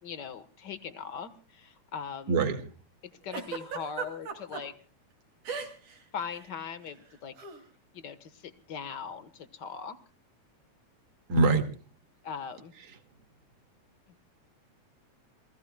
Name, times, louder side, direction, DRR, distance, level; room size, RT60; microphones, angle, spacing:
voice 1, 0.0-2.3 3.0-4.7 6.1-7.3 7.9-10.0 12.2-12.7 14.1-14.2, left 6 dB, 50° left, 11 dB, 1.5 m, -40 dB
voice 2, 2.3-2.6 11.3-11.7 12.9-13.0, right 3 dB, 35° right, 6 dB, 2.4 m, -24 dB
Giggle, 3.3-4.6 5.4-6.0 6.2-6.5 7.4-7.6, right 6 dB, 90° right, 4.2 m, -36 dB
28.5 x 19.5 x 2.3 m, 0.37 s
omnidirectional pair, 3.4 m